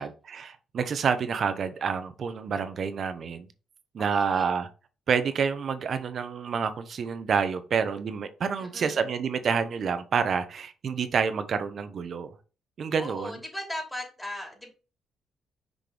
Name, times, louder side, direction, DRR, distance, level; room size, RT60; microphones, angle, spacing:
voice 1, 0.0-3.5 3.9-4.7 5.1-12.3 12.8-13.4, right 6 dB, 55° right, 0.9 m, -28 dB
voice 2, 4.0-4.5 8.6-9.1 13.0-14.7, left 1 dB, 10° left, 2.8 m, -38 dB
6.2 x 5.2 x 3.4 m
cardioid pair, 90°, 0 cm